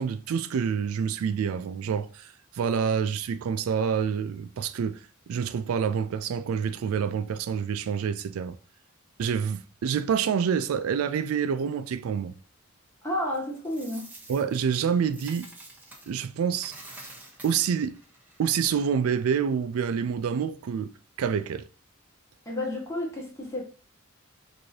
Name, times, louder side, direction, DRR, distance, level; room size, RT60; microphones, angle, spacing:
voice 1, 0.0-8.6 9.2-12.3 14.3-15.5 16.1-16.8 17.4-18.0 18.4-20.9 21.2-21.6, right 7 dB, 90° right, 0.3 m, -27 dB
voice 2, 13.0-14.1 22.4-23.6, left 1 dB, 15° left, 1.4 m, -31 dB
Coin (dropping), 13.3-16.2 16.5-18.8, right 2 dB, 10° right, 0.9 m, -48 dB
4.7 x 2.6 x 2.7 m
head